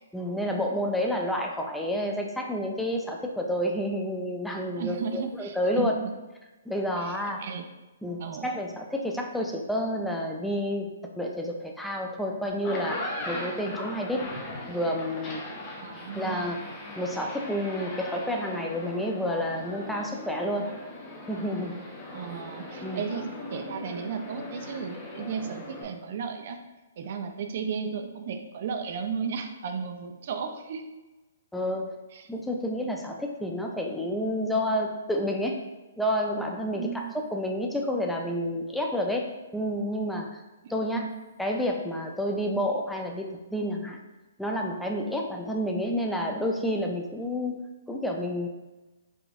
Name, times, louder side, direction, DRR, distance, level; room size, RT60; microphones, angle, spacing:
voice 1, 0.1-5.9 6.7-7.4 8.0-10.9 11.2-14.3 14.7-15.5 16.1-16.6 17.0-20.7 21.3-21.8 22.8-23.0 31.5-32.0 32.3-35.6 36.0-37.1 37.3-40.4 40.7-41.1 41.4-44.0 44.4-48.5, equal, 5° left, 1 dB, 0.4 m, -29 dB
voice 2, 4.7-6.1 7.0-7.1 7.4-7.7 8.2-8.5 15.8-16.5 22.1-26.6 27.0-30.8 32.1-32.3 36.7-37.2 40.6-41.1, right 6 dB, 55° right, 6 dB, 0.4 m, -34 dB
sound 1, 12.5-25.8, left 2 dB, 25° left, 0.8 m, -39 dB
4.8 x 2.5 x 2.4 m, 1.1 s
hypercardioid pair, 135°, 0 cm